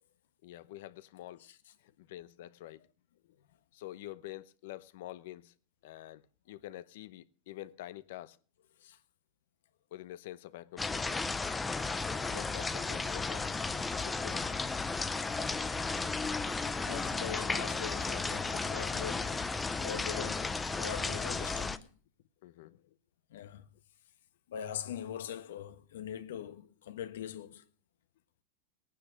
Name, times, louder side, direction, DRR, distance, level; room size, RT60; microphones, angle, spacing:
voice 1, 0.4-1.5 1.8-2.8 3.2-3.4 3.7-5.5 5.8-8.4 9.9-11.2 11.6-13.5 14.0-14.5 22.4-23.0 23.5-23.6, left 14 dB, 70° left, 0.8 m, -47 dB
sound 1, 10.8-21.8, left 4 dB, 10° left, 0.7 m, -34 dB
voice 2, 16.8-19.5 19.8-21.9 23.3-23.7 24.5-27.7, left 9 dB, 90° left, 1.3 m, -42 dB
18.5 x 9.4 x 5.1 m
supercardioid pair, 135°, 0 cm